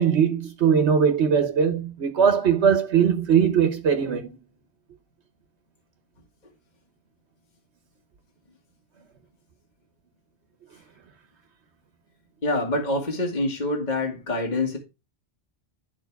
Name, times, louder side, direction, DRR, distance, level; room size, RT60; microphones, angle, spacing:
voice 1, 0.0-4.4, right 7 dB, 80° right, 1.3 m, -20 dB
voice 2, 12.4-14.8, left 2 dB, 40° left, 1.8 m, -26 dB
11.5 x 4.7 x 4.5 m
omnidirectional pair, 1.1 m